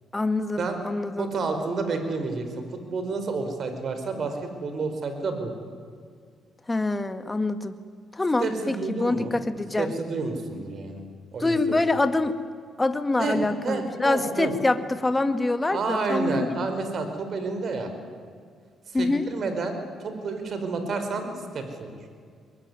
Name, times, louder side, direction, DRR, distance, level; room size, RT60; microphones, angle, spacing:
voice 1, 0.1-1.3 6.7-7.8 8.1-9.9 11.4-12.3 12.8-16.7 18.9-19.3, left 2 dB, 20° left, 9 dB, 1.8 m, -25 dB
voice 2, 1.2-5.5 8.4-9.4 9.8-11.0 11.3-11.8 13.2-13.4 13.6-14.5 15.7-17.9 19.0-21.9, right 4 dB, 55° right, 7 dB, 4.8 m, -30 dB
23.0 x 22.0 x 9.7 m, 2.1 s
cardioid pair, 90°, 0 cm